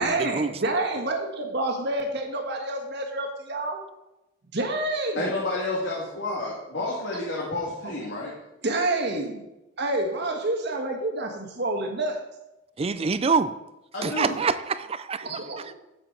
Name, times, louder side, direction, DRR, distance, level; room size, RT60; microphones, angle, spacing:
voice 1, 0.0-3.8 4.5-5.3 8.6-9.4 9.8-12.2 15.2-15.6, right 2 dB, 60° right, 1.5 m, -28 dB
voice 2, 5.2-8.3 13.9-14.4, left 2 dB, 65° left, 1.9 m, -30 dB
voice 3, 12.8-13.5 14.0-15.3, right 5 dB, 30° right, 0.4 m, -25 dB
9.2 x 7.8 x 3.9 m
head